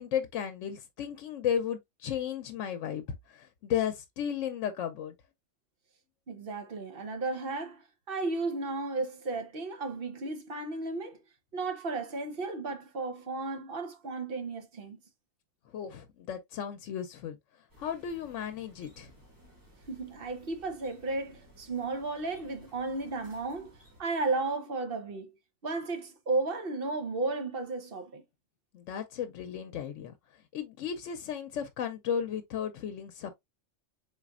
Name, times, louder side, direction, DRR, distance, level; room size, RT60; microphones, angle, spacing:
voice 1, 0.0-5.1 15.7-17.4 17.8-19.1 28.7-30.1 30.5-33.3, left 8 dB, 75° left, 0.9 m, -34 dB
voice 2, 6.3-11.2 11.5-15.0 19.9-23.7 24.0-25.3 25.6-28.2, right 3 dB, 50° right, 1.0 m, -34 dB
sound 1, 17.7-24.0, equal, 15° right, 1.8 m, -58 dB
4.1 x 3.9 x 2.3 m
omnidirectional pair, 1.3 m